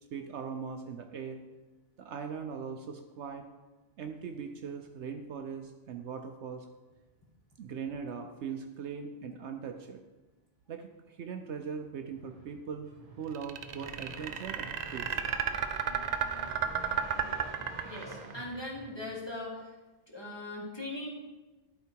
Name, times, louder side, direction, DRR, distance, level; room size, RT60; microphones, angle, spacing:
voice 1, 0.1-1.4 2.0-3.4 4.0-6.7 7.6-10.0 10.7-12.9 13.2-15.2, right 6 dB, 65° right, 5 dB, 0.9 m, -40 dB
sound 1, 11.8-19.4, right 2 dB, 30° right, 1.0 m, -48 dB
sound 2, 13.3-18.4, right 7 dB, 85° right, 0.3 m, -32 dB
voice 2, 17.8-19.8 20.1-21.1, left 2 dB, 20° left, -3 dB, 1.7 m, -40 dB
11.5 x 4.5 x 4.6 m, 1.2 s
omnidirectional pair, 1.3 m